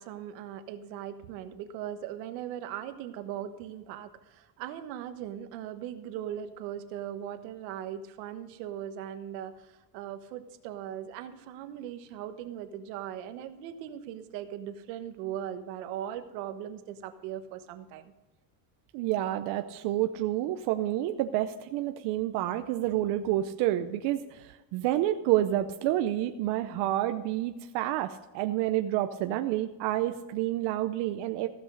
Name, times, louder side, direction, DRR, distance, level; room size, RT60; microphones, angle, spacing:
voice 1, 0.0-18.1, right 10 dB, 80° right, 8 dB, 1.4 m, -39 dB
voice 2, 18.9-31.5, right 13 dB, 55° right, 7 dB, 0.7 m, -29 dB
15.5 x 6.2 x 6.4 m, 1.1 s
cardioid pair, 145°, 49 cm